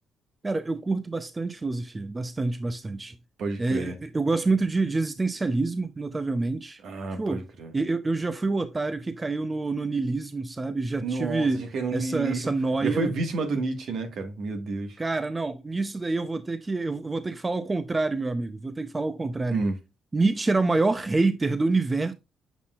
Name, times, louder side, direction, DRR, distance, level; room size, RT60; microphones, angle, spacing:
voice 1, 0.4-3.2 3.6-6.8 7.1-7.5 7.7-11.6 11.9-13.1 15.0-19.6 20.1-22.1, right 3 dB, 20° right, 0.6 m, -27 dB
voice 2, 3.4-4.0 6.8-7.7 11.0-12.5 12.8-15.0 19.5-19.7, right 3 dB, 65° right, 1.6 m, -30 dB
8.2 x 5.6 x 2.4 m
cardioid pair, 90°, 0 cm